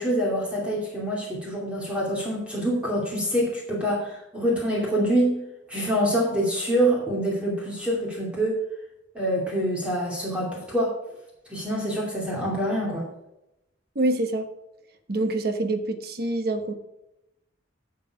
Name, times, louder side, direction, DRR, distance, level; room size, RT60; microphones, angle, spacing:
voice 1, 0.0-5.4 5.7-8.6 9.1-10.9 11.5-13.1, equal, 5° right, -3 dB, 2.5 m, -25 dB
voice 2, 13.9-14.5 15.1-16.7, right 2 dB, 50° right, 7 dB, 1.3 m, -26 dB
11.0 x 6.7 x 5.0 m, 0.88 s
head